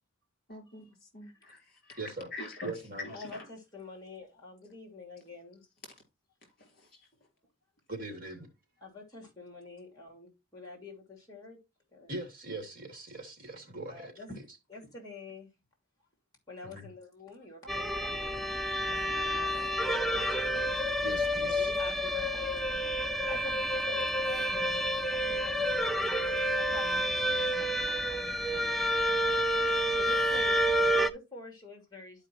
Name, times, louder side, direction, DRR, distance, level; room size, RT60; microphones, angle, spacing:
voice 1, 0.5-2.7 3.0-3.4 6.6-7.1, left 2 dB, 45° left, 3.5 m, -45 dB
voice 2, 1.2-1.6 3.1-5.6 8.8-11.6 11.9-12.1 13.9-15.5 16.5-20.2 21.4-26.2 26.5-28.8 29.9-32.3, left 3 dB, 20° left, 2.8 m, -48 dB
voice 3, 2.0-2.3 2.6-3.1 7.9-8.5 12.1-14.1 16.6-16.9 21.0-21.7 30.3-30.4, right 2 dB, 45° right, 2.4 m, -41 dB
sound 1, 17.7-31.1, equal, ahead, 0.3 m, -29 dB
11.5 x 5.0 x 2.9 m
head